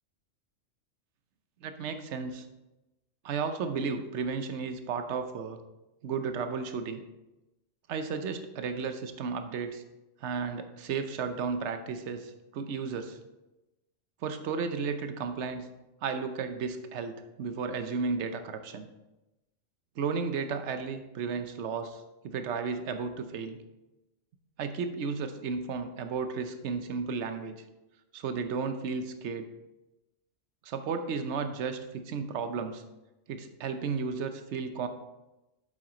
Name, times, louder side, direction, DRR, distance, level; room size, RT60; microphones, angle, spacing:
voice 1, 1.6-2.5 3.2-5.6 6.0-7.0 7.9-9.8 10.2-13.2 14.2-15.7 16.0-18.9 20.0-23.6 24.6-27.5 28.1-29.5 30.6-32.8 33.3-34.9, right 5 dB, 65° right, 8 dB, 1.0 m, -33 dB
8.1 x 7.6 x 3.9 m, 1.0 s
omnidirectional pair, 1.3 m